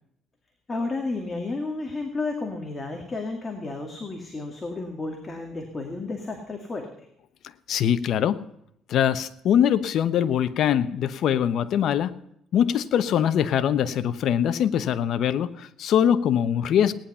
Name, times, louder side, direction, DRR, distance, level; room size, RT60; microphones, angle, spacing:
voice 1, 0.7-6.8, left 3 dB, 20° left, 3 dB, 2.2 m, -32 dB
voice 2, 7.7-8.4 8.9-12.1 12.5-16.9, left 9 dB, 60° left, 13 dB, 0.9 m, -22 dB
18.0 x 10.5 x 5.5 m, 0.75 s
cardioid pair, 125°, 0 cm